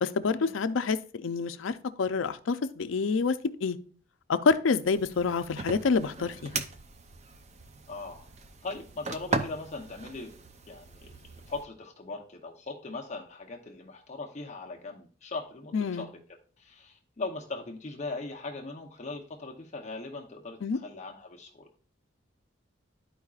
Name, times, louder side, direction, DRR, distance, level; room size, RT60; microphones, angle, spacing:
voice 1, 0.0-3.8 4.3-6.6 15.7-16.1 20.6-20.8, left 4 dB, 80° left, 11 dB, 0.5 m, -27 dB
sound 1, 4.8-11.6, right 3 dB, 35° right, 0.5 m, -38 dB
voice 2, 7.9-8.3 8.6-10.3 10.7-16.1 16.6-21.7, left 3 dB, 35° left, 1 dB, 0.7 m, -40 dB
12.5 x 4.7 x 2.4 m, 0.43 s
head